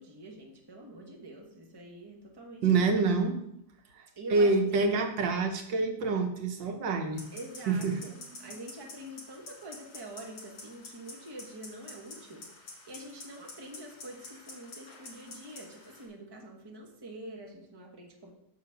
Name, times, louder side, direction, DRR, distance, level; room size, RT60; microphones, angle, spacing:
voice 1, 0.0-2.6 4.2-4.9 7.3-8.1 8.4-12.4 12.9-18.3, right 1 dB, 15° right, 1 dB, 1.0 m, -46 dB
voice 2, 2.6-3.4 3.9-7.2 7.7-8.6, right 4 dB, 85° right, 4 dB, 1.7 m, -27 dB
sound 1, 7.1-16.0, left 2 dB, 75° left, 2.9 m, -49 dB
6.7 x 5.9 x 5.7 m, 0.78 s
omnidirectional pair, 2.0 m